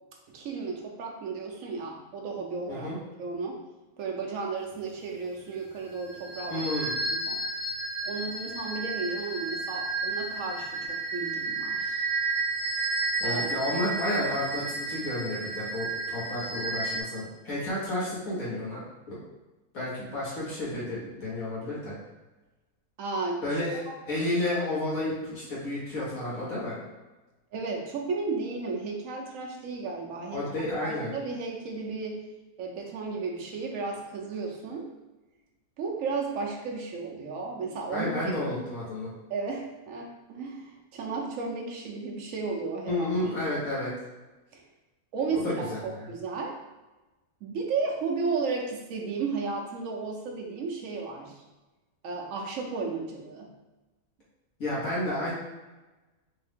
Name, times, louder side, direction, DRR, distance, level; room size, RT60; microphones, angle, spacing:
voice 1, 0.3-2.9 3.2-3.6 4.0-6.7 7.1-7.4 8.0-12.0 13.2-13.5 23.0-23.4 27.5-30.4 30.8-32.2 32.6-34.9 35.8-38.1 39.3-43.1 44.5-44.6 45.1-46.6 47.4-51.3 52.0-53.5, right 4 dB, 65° right, 0 dB, 1.1 m, -34 dB
voice 2, 2.7-3.0 6.5-6.9 13.2-19.2 19.7-22.0 23.4-26.8 30.3-31.1 37.9-39.1 42.9-43.9 45.4-46.1 54.6-55.3, left 1 dB, 70° left, -8 dB, 2.0 m, -31 dB
sound 1, 5.9-17.0, right 3 dB, 35° right, 0.9 m, -32 dB
4.2 x 2.7 x 3.5 m, 1.1 s
omnidirectional pair, 1.5 m